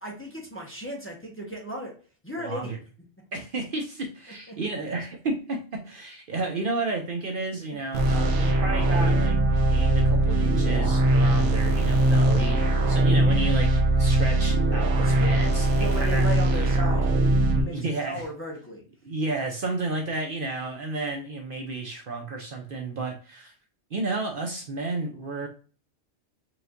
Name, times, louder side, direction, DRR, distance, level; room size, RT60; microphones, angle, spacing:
voice 1, 0.0-1.9 2.2-2.8 4.5-4.8 15.0-15.4 15.8-17.1 17.4-17.8 18.1-18.8, equal, 10° left, -3 dB, 0.9 m, -35 dB
voice 2, 2.4-2.8 3.3-9.4 9.7-16.3 17.5-18.2 19.0-23.5 23.9-25.5, right 3 dB, 55° right, 2 dB, 0.8 m, -32 dB
sound 1, 7.9-17.6, right 2 dB, 85° right, 1.1 m, -21 dB
4.7 x 3.1 x 2.5 m, 0.38 s
omnidirectional pair, 1.2 m